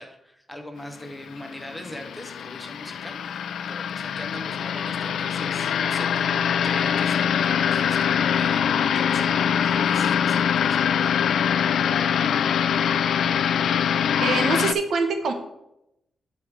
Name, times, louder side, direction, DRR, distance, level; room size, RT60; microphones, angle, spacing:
voice 1, 0.0-3.4 3.7-11.2 12.2-12.3, left 1 dB, 5° left, 4 dB, 0.8 m, -40 dB
sound 1, 1.2-14.7, left 8 dB, 75° left, 0.3 m, -23 dB
voice 2, 14.2-15.3, right 4 dB, 65° right, 6 dB, 1.0 m, -24 dB
8.5 x 4.8 x 4.9 m, 0.85 s
wide cardioid pair, 165°, 0 cm